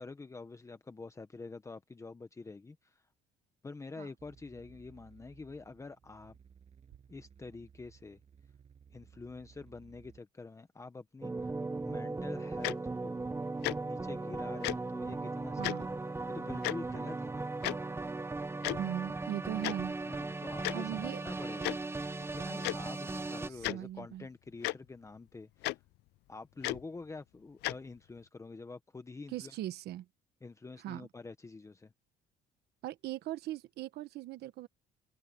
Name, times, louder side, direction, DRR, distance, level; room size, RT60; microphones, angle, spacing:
voice 1, 0.0-3.1 3.6-6.4 7.1-8.2 8.9-13.2 13.8-15.9 16.3-17.6 20.0-21.7 22.2-25.8 26.3-29.5 30.4-31.9, left 3 dB, 15° left, 1.1 m, -47 dB
sound 1, 4.2-10.2, right 7 dB, 40° right, 7.8 m, -60 dB
sound 2, 11.2-23.5, right 3 dB, 15° right, 1.2 m, -37 dB
Tick-tock, 12.6-12.7 13.6-13.7 14.6-14.7 15.6-15.8 16.6-16.7 17.6-17.7 18.6-18.8 19.6-19.7 20.6-20.7 21.6-21.7 22.6-22.7 23.6-23.8 24.6-24.7 25.6-25.7 26.6-26.8 27.6-27.7, left 19 dB, 80° left, 0.5 m, -33 dB
voice 2, 18.8-19.9 20.7-21.2 23.7-24.3 29.3-30.0 30.8-31.1 32.8-34.7, right 13 dB, 75° right, 1.2 m, -39 dB
cardioid pair, 110°, 17 cm